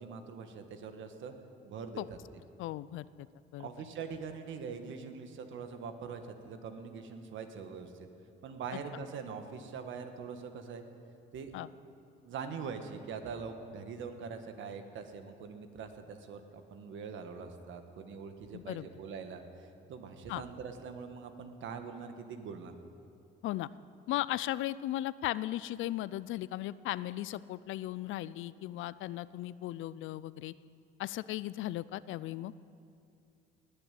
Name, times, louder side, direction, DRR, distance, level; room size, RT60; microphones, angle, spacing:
voice 1, 0.0-1.3 1.6-2.2 3.6-8.1 8.4-10.9 11.3-11.6 12.2-22.7, right 6 dB, 75° right, 7 dB, 1.4 m, -43 dB
voice 2, 2.6-3.1 3.5-3.7 11.5-11.7 18.5-18.8 20.3-20.4 23.4-23.7 24.1-30.5 31.0-32.5, left 15 dB, 80° left, 18 dB, 0.4 m, -36 dB
19.5 x 7.0 x 9.2 m, 2.5 s
cardioid pair, 90°, 20 cm